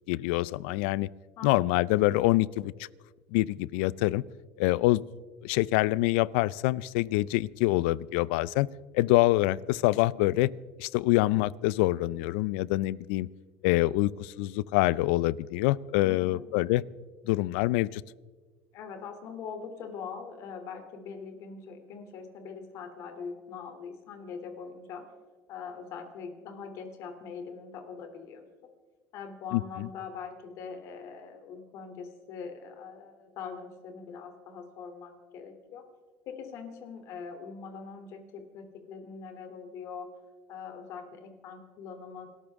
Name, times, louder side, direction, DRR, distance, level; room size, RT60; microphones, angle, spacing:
voice 1, 0.1-1.1 1.4-2.7 3.3-4.2 4.6-5.0 5.4-8.7 8.9-10.5 10.8-13.3 13.6-16.8 17.3-18.0 29.5-29.9, left 18 dB, 80° left, 22 dB, 0.4 m, -25 dB
voice 2, 16.0-16.5 18.7-25.1 25.5-28.5 29.1-35.8 36.3-40.1 40.5-42.3, left 6 dB, 60° left, 6 dB, 2.9 m, -42 dB
28.5 x 13.5 x 3.6 m, 1.4 s
supercardioid pair, 110°, 6 cm